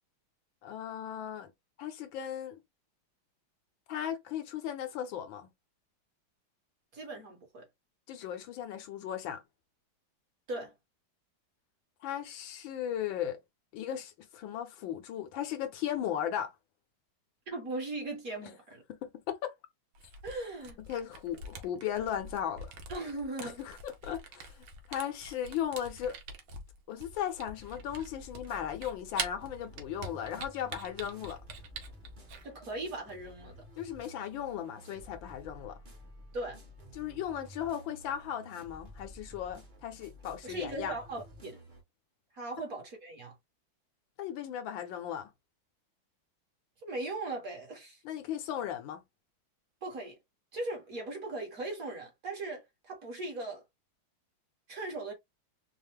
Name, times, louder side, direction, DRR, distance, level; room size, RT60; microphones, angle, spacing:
voice 1, 0.6-1.5 1.8-2.6 3.9-5.5 8.1-9.4 12.0-13.4 13.7-16.5 18.4-18.5 18.9-19.5 20.9-22.8 23.4-26.2 26.9-31.4 33.8-35.8 36.9-40.9 44.2-45.3 48.0-49.0, left 10 dB, 75° left, 1.4 m, -37 dB
voice 2, 6.9-7.6 10.5-10.7 17.5-18.8 20.2-20.8 22.9-23.6 32.4-33.6 36.3-36.6 40.4-41.6 42.4-43.3 46.8-48.0 49.8-50.2 50.5-53.6 54.7-55.1, right 2 dB, 45° right, 1.5 m, -38 dB
Camera, 19.9-32.4, right 4 dB, 80° right, 1.7 m, -44 dB
sound 1, 27.6-41.8, equal, 30° right, 1.0 m, -52 dB
4.6 x 2.0 x 3.4 m
omnidirectional pair, 2.3 m